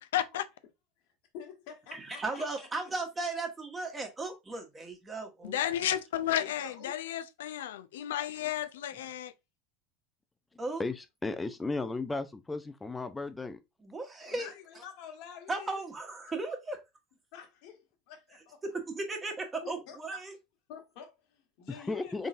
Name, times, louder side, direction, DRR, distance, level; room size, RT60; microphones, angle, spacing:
voice 1, 0.1-0.4 5.4-9.3, left 11 dB, 80° left, 0.4 m, -32 dB
voice 2, 1.3-2.4 6.3-6.9 14.3-15.8 17.3-18.6 19.6-20.2 20.7-22.3, left 8 dB, 65° left, 1.4 m, -48 dB
voice 3, 1.9-5.6 10.6-10.8 13.8-14.5 15.5-16.8 18.6-20.3, right 3 dB, 20° right, 1.4 m, -36 dB
voice 4, 10.8-13.6 21.7-22.3, left 3 dB, 15° left, 0.5 m, -35 dB
3.9 x 3.7 x 2.5 m
hypercardioid pair, 85°, 0 cm